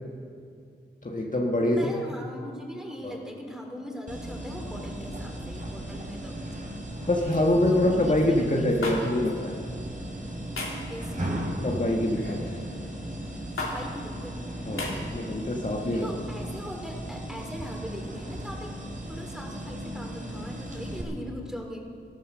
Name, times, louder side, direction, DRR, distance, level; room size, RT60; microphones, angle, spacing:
voice 1, 1.0-2.0 3.0-3.2 7.1-9.6 11.6-12.5 14.6-16.1, left 1 dB, 40° left, -1 dB, 1.6 m, -25 dB
voice 2, 1.7-6.4 7.6-9.2 10.9-11.4 13.6-14.4 16.0-18.8 19.1-21.8, equal, ahead, 1 dB, 3.5 m, -40 dB
sound 1, 4.1-21.0, right 1 dB, 40° right, 3.4 m, -36 dB
sound 2, 8.8-9.0 10.6-10.8 12.2-12.5 13.6-13.7 14.8-14.9, left 3 dB, 80° left, 3.1 m, -32 dB
14.5 x 13.0 x 6.4 m, 2.3 s
cardioid pair, 50°, 21 cm